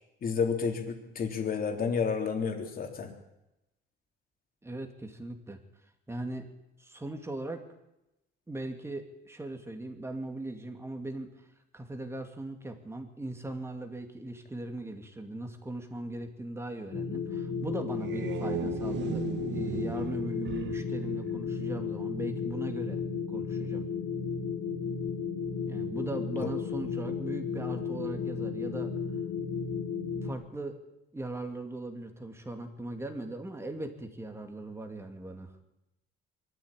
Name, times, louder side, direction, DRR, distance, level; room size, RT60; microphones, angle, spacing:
voice 1, 0.2-3.1 26.4-26.5, left 6 dB, 45° left, 3 dB, 3.5 m, -30 dB
voice 2, 4.6-5.6 6.1-6.5 6.8-7.6 8.5-11.3 11.7-23.0 23.3-23.9 25.6-28.9 30.2-30.8 31.1-35.5, right 2 dB, 10° right, 5 dB, 2.5 m, -39 dB
sound 1, 16.9-30.3, left 6 dB, 65° left, 4.6 m, -34 dB
sound 2, 17.8-22.0, right 9 dB, 55° right, 1.3 m, -38 dB
23.0 x 13.0 x 9.0 m, 0.92 s
cardioid pair, 130°, 21 cm